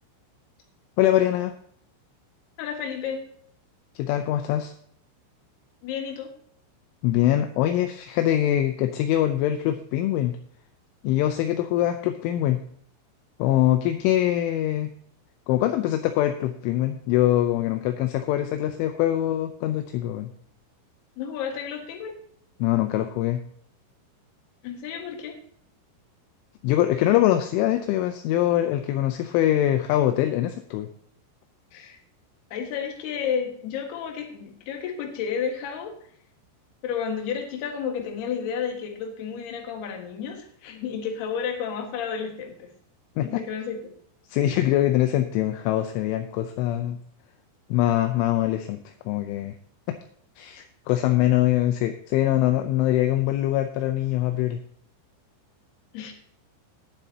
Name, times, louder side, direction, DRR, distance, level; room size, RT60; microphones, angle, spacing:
voice 1, 1.0-1.5 4.0-4.7 7.0-10.4 11.0-12.6 13.4-14.9 15.5-20.3 22.6-23.4 26.6-30.9 43.2-43.4 44.3-47.0 47.7-49.6 49.9-50.0 50.4-54.6, left 13 dB, 80° left, 7 dB, 3.0 m, -23 dB
voice 2, 2.6-3.3 5.8-6.3 21.2-22.2 24.6-25.4 31.7-32.0 32.5-35.9 36.8-42.7 43.2-43.9 55.9-56.1, left 7 dB, 60° left, 3 dB, 3.3 m, -31 dB
19.5 x 7.7 x 2.9 m, 0.62 s
omnidirectional pair, 5.8 m